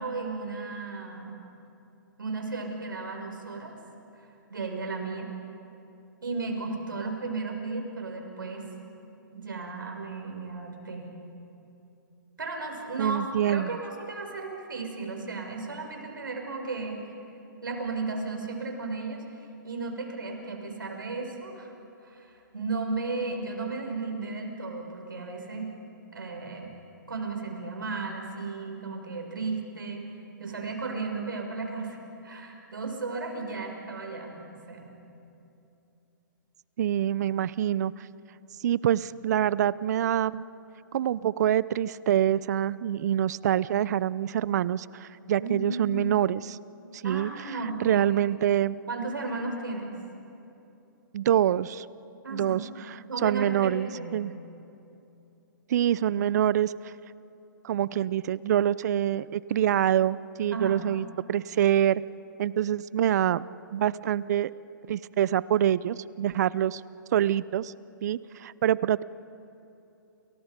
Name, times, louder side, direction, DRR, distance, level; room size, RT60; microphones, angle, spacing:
voice 1, 0.0-1.4 2.2-3.8 4.2-5.3 6.2-8.7 9.3-11.1 12.4-17.0 17.6-21.7 22.0-25.7 26.1-26.7 27.1-30.0 30.4-34.9 45.4-45.9 47.0-48.1 48.9-49.9 52.2-52.6 53.1-54.2 60.5-60.8, right 3 dB, 85° right, 2 dB, 6.2 m, -35 dB
voice 2, 13.0-13.7 36.8-38.1 38.6-40.4 40.9-46.6 46.9-48.8 51.1-51.8 52.3-52.6 53.2-54.3 55.7-56.9 57.6-62.0 62.4-63.4 63.7-64.5 64.9-66.8 67.1-67.7 68.0-69.0, right 11 dB, 55° right, 19 dB, 0.7 m, -26 dB
29.5 x 29.0 x 5.3 m, 2.8 s
hypercardioid pair, 130°, 11 cm